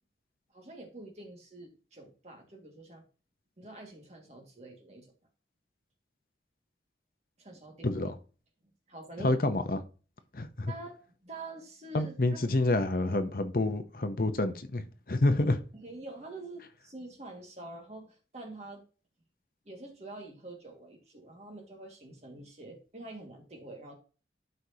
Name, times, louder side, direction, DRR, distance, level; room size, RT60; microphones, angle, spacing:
voice 1, 0.5-3.1 3.6-5.1 7.4-7.9 8.9-9.4 10.7-11.0 11.2-12.7 15.7-18.8 19.7-23.9, right 2 dB, 40° right, 2.0 m, -46 dB
voice 2, 7.8-8.1 9.2-9.8 10.3-10.7 11.9-15.6, left 2 dB, 55° left, 0.8 m, -28 dB
12.0 x 4.8 x 2.9 m
head